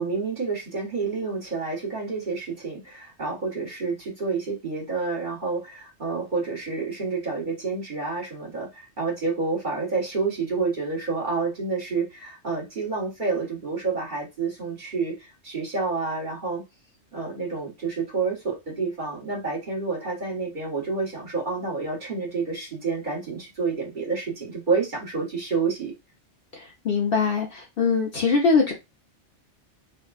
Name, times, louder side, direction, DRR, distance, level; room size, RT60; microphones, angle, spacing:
voice 1, 0.0-16.6 17.1-25.9, right 4 dB, 45° right, 1.4 m, -29 dB
voice 2, 26.5-28.7, left 4 dB, 55° left, 0.9 m, -22 dB
3.5 x 2.3 x 2.3 m
omnidirectional pair, 1.2 m